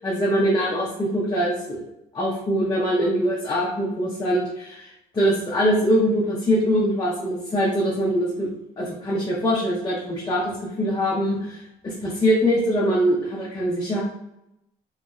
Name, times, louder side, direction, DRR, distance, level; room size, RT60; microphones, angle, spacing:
voice 1, 0.0-1.8 2.1-4.9 5.1-8.5 8.8-14.0, equal, 25° left, -6 dB, 0.8 m, -23 dB
3.1 x 2.6 x 2.3 m, 0.86 s
cardioid pair, 110°, 17 cm